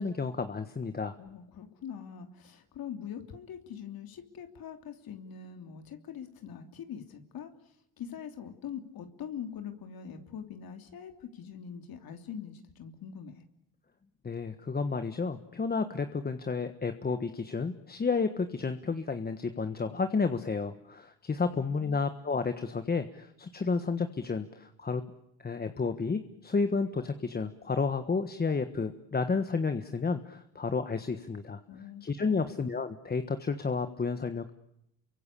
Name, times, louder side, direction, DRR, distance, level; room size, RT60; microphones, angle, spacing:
voice 1, 0.0-1.1 14.2-25.0 25.4-31.6 32.0-34.5, left 4 dB, 25° left, 8 dB, 1.4 m, -31 dB
voice 2, 1.2-7.5 8.0-13.4 21.5-22.1 31.7-32.5, left 8 dB, 65° left, 6 dB, 3.1 m, -43 dB
29.0 x 23.5 x 8.5 m, 0.78 s
cardioid pair, 115°, 38 cm